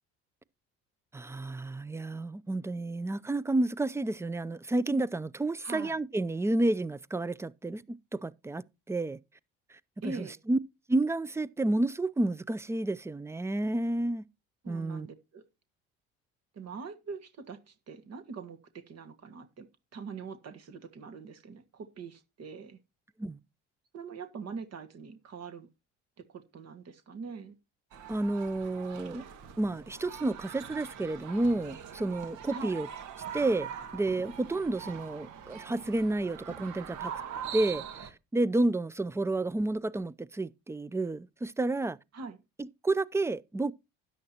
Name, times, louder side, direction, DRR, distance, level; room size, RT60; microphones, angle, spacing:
voice 1, 1.1-9.2 10.0-10.6 10.9-14.2 14.7-15.1 23.2-23.4 28.1-29.2 29.6-32.9 33.3-33.7 33.9-37.1 37.5-42.0 42.6-43.7, right 2 dB, 10° right, 0.5 m, -30 dB
voice 2, 5.6-6.0 10.0-10.4 14.6-15.4 16.5-22.8 23.9-25.7 26.3-27.6 32.5-32.8 42.1-42.4, right 4 dB, 50° right, 1.8 m, -43 dB
sound 1, 27.9-38.1, right 8 dB, 70° right, 1.9 m, -43 dB
13.0 x 9.7 x 2.9 m
supercardioid pair, 75°, 32 cm